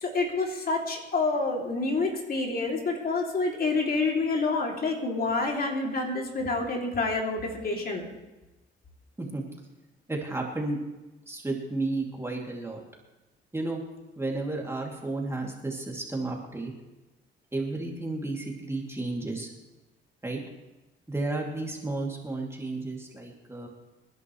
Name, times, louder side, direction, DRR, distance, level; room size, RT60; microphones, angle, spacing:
voice 1, 0.0-8.1, left 3 dB, 50° left, 0 dB, 2.8 m, -28 dB
voice 2, 10.1-10.8 11.3-12.8 13.5-13.8 14.2-16.7 17.5-19.5 20.2-20.4 21.1-23.7, right 2 dB, 15° right, -1 dB, 2.7 m, -32 dB
26.5 x 10.5 x 3.2 m, 1.1 s
cardioid pair, 90°, 20 cm